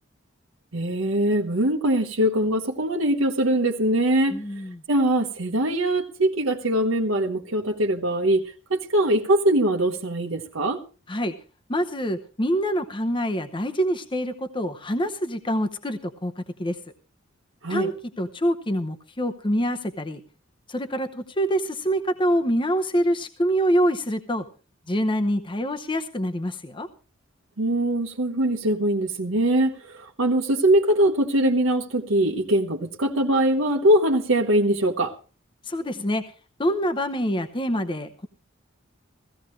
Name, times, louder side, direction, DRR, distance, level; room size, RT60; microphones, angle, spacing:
voice 1, 0.7-4.4 4.9-8.4 8.7-10.8 17.6-17.9 27.6-35.1, right 1 dB, 90° right, 1.1 m, -22 dB
voice 2, 4.3-4.8 11.1-11.3 11.7-16.3 16.6-16.8 17.7-20.2 20.7-24.4 24.9-26.9 35.7-36.2 36.6-38.3, equal, 25° left, 0.8 m, -25 dB
16.0 x 15.0 x 3.2 m
head